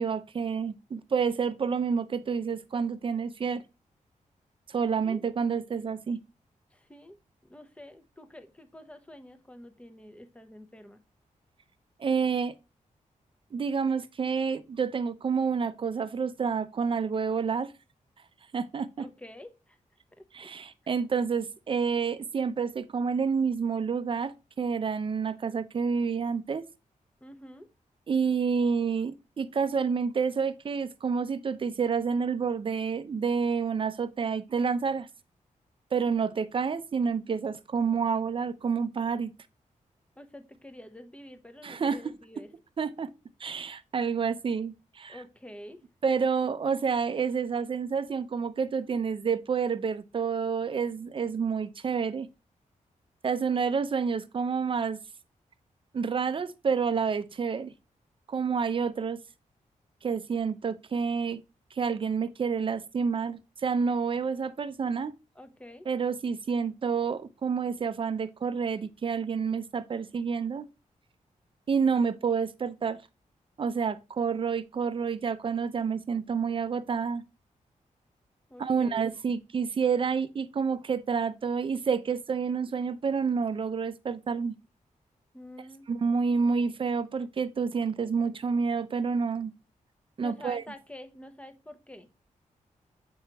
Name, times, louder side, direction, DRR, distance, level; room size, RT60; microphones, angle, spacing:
voice 1, 0.0-3.6 4.7-6.2 12.0-12.5 13.5-17.7 18.5-19.0 20.3-26.7 28.1-35.1 35.9-39.3 41.6-42.0 42.8-43.1 43.4-45.2 46.0-52.3 53.2-55.0 55.9-57.7 58.3-59.2 60.0-61.4 61.8-65.1 65.9-70.7 71.7-73.0 73.6-77.2 78.6-84.6 85.9-89.5 90.2-90.6, right 6 dB, 40° right, 0.5 m, -29 dB
voice 2, 6.7-7.2 7.4-11.0 19.0-19.8 20.1-20.5 20.8-20.9 27.2-27.7 40.2-42.5 45.1-45.8 65.3-65.9 78.5-79.1 85.3-85.9 90.2-92.1, left 1 dB, 10° left, 0.8 m, -47 dB
7.4 x 4.5 x 2.9 m
wide cardioid pair, 125°, 13 cm